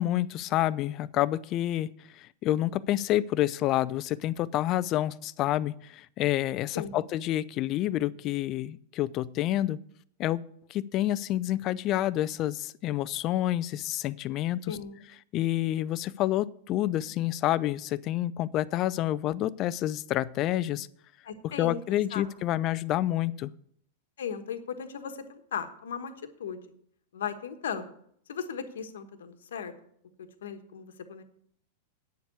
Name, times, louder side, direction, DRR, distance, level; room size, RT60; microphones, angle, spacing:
voice 1, 0.0-9.8 10.2-10.4 10.7-14.8 15.3-20.9 21.4-23.5, left 14 dB, 40° left, 19 dB, 0.5 m, -28 dB
voice 2, 14.7-15.0 21.2-21.8 22.1-22.3 24.2-26.1 26.4-26.6 27.1-27.9 28.3-29.7 30.4-31.2, left 7 dB, 75° left, 9 dB, 1.2 m, -36 dB
9.2 x 7.1 x 8.2 m, 0.67 s
hypercardioid pair, 105°, 0 cm